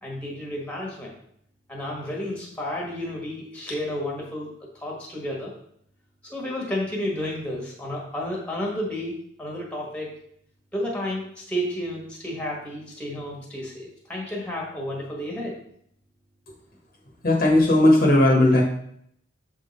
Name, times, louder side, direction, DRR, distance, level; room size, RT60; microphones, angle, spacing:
voice 1, 0.0-1.1 1.7-5.5 6.2-9.1 9.4-10.2 10.7-15.6, left 1 dB, 5° left, -3 dB, 1.4 m, -31 dB
voice 2, 17.2-18.6, left 1 dB, 45° left, -1 dB, 1.2 m, -17 dB
7.2 x 3.7 x 4.1 m, 0.68 s
head